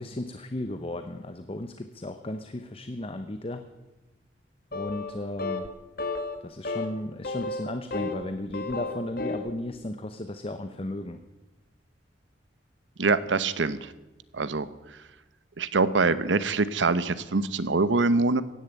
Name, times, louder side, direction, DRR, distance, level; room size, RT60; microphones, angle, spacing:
voice 1, 0.0-3.6 4.7-5.7 6.4-11.2, left 1 dB, 30° left, 9 dB, 0.8 m, -35 dB
sound 1, 4.7-5.1 5.4-5.7 6.0-6.4 6.6-6.9 7.2-8.2 8.5-9.5, left 3 dB, 55° left, 1.6 m, -32 dB
voice 2, 13.0-13.9 14.3-14.7 15.6-18.4, right 3 dB, 90° right, 15 dB, 0.9 m, -24 dB
16.0 x 10.5 x 8.3 m, 1.1 s
head